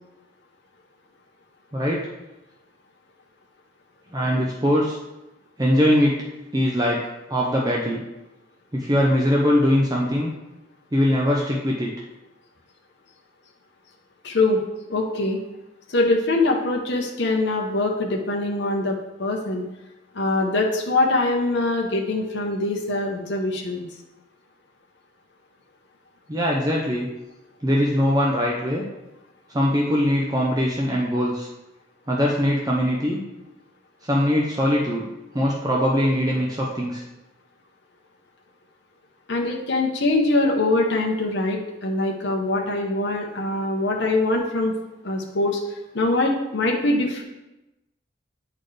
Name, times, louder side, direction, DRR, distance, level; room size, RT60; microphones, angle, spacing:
voice 1, 1.7-2.1 4.1-5.0 5.6-6.2 6.5-7.0 7.3-8.0 8.7-10.3 10.9-11.9 26.3-27.1 27.6-28.8 29.5-31.5 32.1-33.2 34.1-35.0 35.3-37.0, equal, 20° right, -3 dB, 0.6 m, -21 dB
voice 2, 14.2-14.6 14.9-15.4 15.9-19.7 20.1-23.8 39.3-44.7 45.0-47.2, left 2 dB, 60° left, 0 dB, 0.9 m, -23 dB
9.2 x 4.2 x 3.3 m, 1.0 s
head